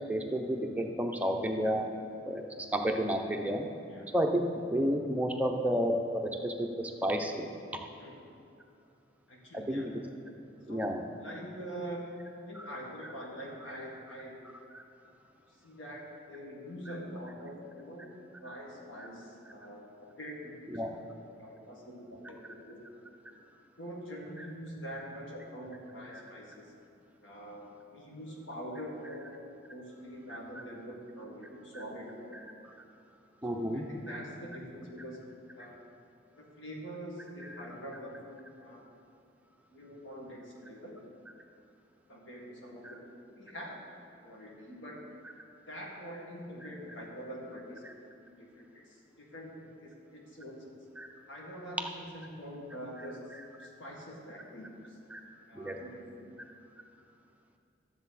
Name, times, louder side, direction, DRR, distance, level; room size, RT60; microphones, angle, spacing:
voice 1, 0.1-1.9 2.3-3.7 4.1-7.5 9.7-9.9 10.7-11.0 12.6-12.7 14.7-14.8 20.7-20.9 33.4-34.2 51.0-51.1 55.1-55.2 55.5-55.8, equal, 10° right, 2 dB, 0.6 m, -31 dB
voice 2, 9.3-9.9 10.7-10.9 11.2-12.1 12.5-14.4 15.6-18.1 18.4-20.6 20.9-22.8 23.3-23.4 23.8-26.7 27.2-29.3 29.7-32.4 33.4-35.2 35.6-35.8 36.4-38.8 39.7-41.0 42.1-43.0 43.4-43.8 44.2-45.1 45.7-50.7 51.3-53.2 53.6-55.0 55.5-56.3, equal, 75° left, -2 dB, 1.8 m, -44 dB
12.5 x 7.1 x 4.1 m, 2.5 s
head